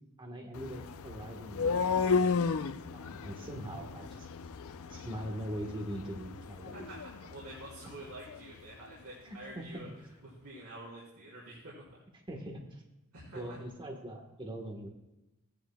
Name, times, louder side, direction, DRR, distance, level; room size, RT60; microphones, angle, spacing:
voice 1, 0.2-2.3 2.9-4.3 4.9-6.7 9.2-9.9 12.3-12.8 13.3-14.9, right 1 dB, 20° right, 1 dB, 1.2 m, -42 dB
sound 1, 0.5-8.5, left 5 dB, 65° left, 0.5 m, -34 dB
voice 2, 6.7-9.9 10.2-12.0 13.1-13.6, right 1 dB, 80° right, -7 dB, 2.9 m, -48 dB
15.0 x 10.0 x 2.2 m, 0.95 s
head